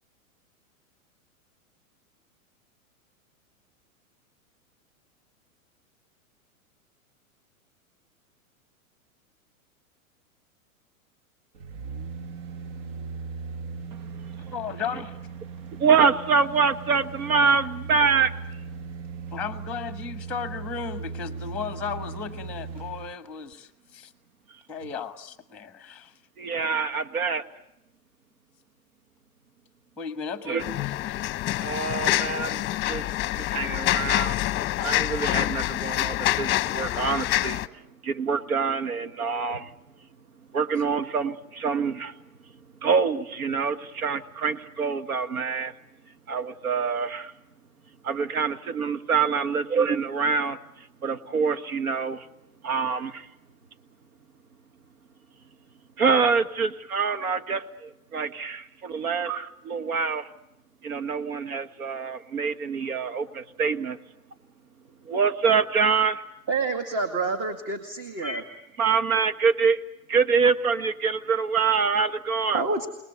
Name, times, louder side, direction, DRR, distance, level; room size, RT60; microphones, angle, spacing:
sound 1, 11.5-23.1 23.5-23.6, right 5 dB, 55° right, 1.6 m, -38 dB
voice 1, 14.5-15.2 19.3-24.1 24.7-26.1 30.0-30.6 31.1-31.2, left 6 dB, 5° left, 9 dB, 1.2 m, -35 dB
voice 2, 15.8-18.3 26.4-27.4 30.5-30.6 31.6-33.0 33.5-34.4 34.8-37.6 38.0-39.7 40.5-42.1 42.8-45.7 46.3-47.3 48.0-50.6 51.0-52.2 52.6-53.2 56.0-60.3 60.8-64.0 65.1-66.2 68.8-69.8 70.1-72.6, right 5 dB, 85° right, 10 dB, 1.6 m, -25 dB
sound 2, 30.6-37.7, left 15 dB, 25° left, 0.8 m, -26 dB
voice 3, 66.5-68.4 72.5-72.9, right 3 dB, 35° right, 7 dB, 2.1 m, -28 dB
29.5 x 19.5 x 8.2 m, 0.91 s
hypercardioid pair, 125°, 42 cm